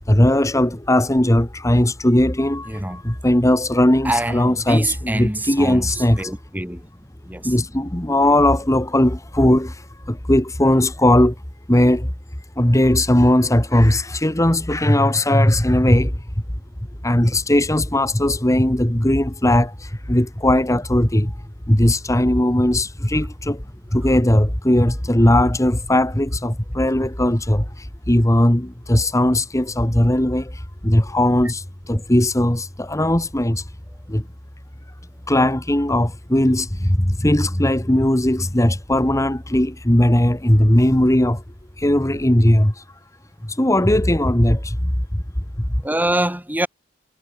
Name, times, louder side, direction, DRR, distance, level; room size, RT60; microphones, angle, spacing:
voice 1, 0.1-6.3 7.4-11.4 11.7-12.1 12.6-16.2 17.0-21.4 21.7-23.6 23.9-33.7 34.1-34.2 35.3-41.4 41.8-42.8 43.4-44.9 45.6-45.7, left 1 dB, 15° left, 1.7 m, -18 dB
voice 2, 2.7-3.0 4.0-6.8 7.3-7.5 45.8-46.7, right 1 dB, 10° right, 2.5 m, -25 dB
head